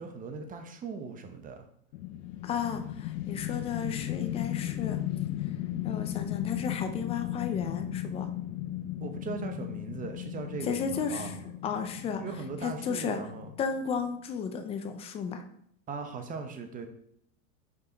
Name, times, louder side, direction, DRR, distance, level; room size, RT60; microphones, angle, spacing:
voice 1, 0.0-1.6 9.0-11.5 12.2-13.5 15.9-16.9, right 5 dB, 20° right, 6 dB, 0.8 m, -39 dB
sound 1, 1.9-14.1, left 13 dB, 70° left, 0.6 m, -36 dB
voice 2, 2.4-5.0 5.8-8.3 10.6-11.4 11.6-12.2 12.6-13.2 13.6-15.4, left 6 dB, 15° left, 7 dB, 0.3 m, -33 dB
5.7 x 4.8 x 3.9 m, 0.70 s
supercardioid pair, 135°, 42 cm